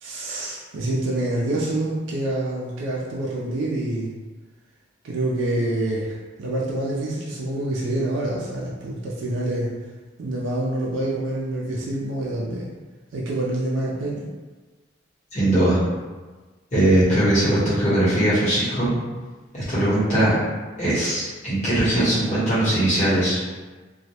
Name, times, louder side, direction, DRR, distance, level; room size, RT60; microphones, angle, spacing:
voice 1, 0.0-4.1 5.0-9.7 10.2-12.7 13.1-14.3, right 1 dB, 65° right, -5 dB, 0.4 m, -26 dB
voice 2, 15.3-15.8 16.7-18.9 19.5-20.4 20.8-23.4, right 1 dB, 35° left, -10 dB, 1.0 m, -20 dB
2.2 x 2.0 x 2.8 m, 1.3 s
head